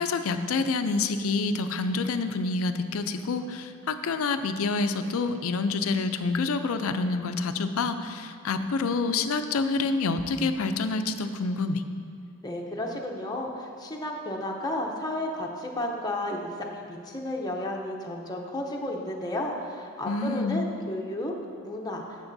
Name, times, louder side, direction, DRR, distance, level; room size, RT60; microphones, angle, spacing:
voice 1, 0.0-11.8 20.0-20.6, left 3 dB, 70° left, 9 dB, 0.5 m, -27 dB
voice 2, 12.4-21.3 21.6-22.0, left 1 dB, 15° left, 0 dB, 0.7 m, -32 dB
13.0 x 7.4 x 2.7 m, 2.3 s
head